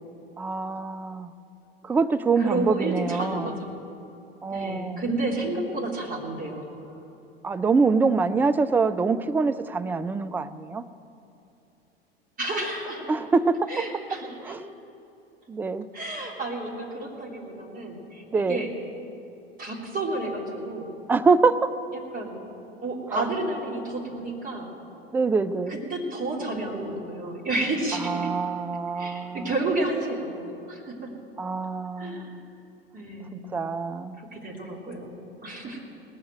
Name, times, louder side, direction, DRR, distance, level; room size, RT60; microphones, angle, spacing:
voice 1, 0.4-1.3 1.8-3.5 4.4-5.1 7.4-10.8 13.1-13.8 14.4-14.6 15.5-15.9 18.3-18.6 21.1-21.7 23.1-23.3 25.1-25.8 27.9-29.5 31.4-32.4 33.3-34.2, right 4 dB, 5° right, 11 dB, 0.3 m, -25 dB
voice 2, 2.4-3.7 4.5-6.7 12.4-13.0 13.7-14.5 15.9-18.7 19.6-20.9 22.1-22.3 22.8-24.7 25.7-28.2 29.0-31.1 32.0-32.4 32.9-33.5 34.2-35.8, right 2 dB, 25° right, -1 dB, 3.2 m, -31 dB
18.0 x 7.4 x 9.0 m, 2.8 s
figure-of-eight pair, 75°, 31 cm